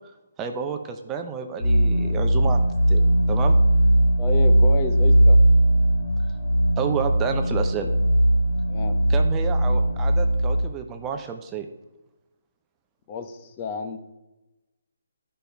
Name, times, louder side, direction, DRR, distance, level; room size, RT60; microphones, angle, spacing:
voice 1, 0.4-3.0 3.3-3.5 6.8-7.9 9.1-11.7, right 7 dB, 15° right, 5 dB, 0.6 m, -30 dB
sound 1, 1.6-10.7, right 1 dB, 70° left, 1.7 m, -19 dB
voice 2, 4.2-5.4 8.7-9.0 13.1-14.0, left 4 dB, 25° left, 7 dB, 0.9 m, -31 dB
11.5 x 5.5 x 4.5 m, 1.0 s
hypercardioid pair, 160°, 0 cm